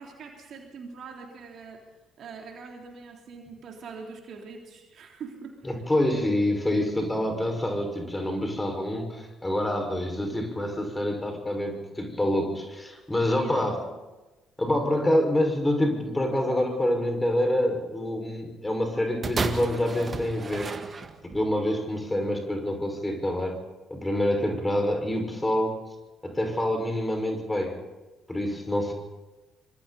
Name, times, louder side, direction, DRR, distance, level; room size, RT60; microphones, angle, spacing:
voice 1, 0.0-1.8 2.2-5.6 13.3-13.7, right 5 dB, 50° right, 2 dB, 3.7 m, -42 dB
voice 2, 5.7-13.8 14.6-20.7 21.2-23.6 23.9-25.8 26.2-27.8 28.3-28.9, left 1 dB, 15° left, 4 dB, 5.7 m, -26 dB
sound 1, 19.2-21.5 22.3-22.4, right 4 dB, 35° right, 1.8 m, -32 dB
25.5 x 25.0 x 4.3 m, 1.2 s
figure-of-eight pair, 45°, 0 cm